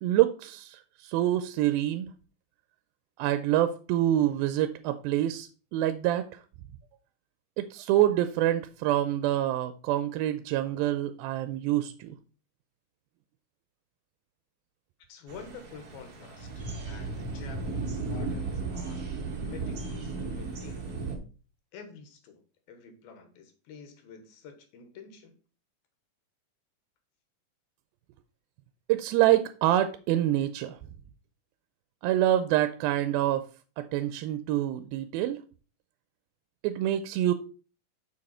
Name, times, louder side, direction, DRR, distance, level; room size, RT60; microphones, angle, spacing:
voice 1, 0.0-2.1 3.2-6.2 7.6-12.2 28.9-30.8 32.0-33.5 33.8-35.4 36.6-37.3, right 13 dB, 85° right, 2.4 m, -26 dB
voice 2, 15.1-19.1 19.4-21.0 21.7-22.4 22.7-25.3, left 5 dB, 85° left, 3.1 m, -48 dB
sound 1, 15.3-21.2, right 3 dB, 60° right, 1.0 m, -35 dB
6.8 x 6.5 x 4.3 m
omnidirectional pair, 4.2 m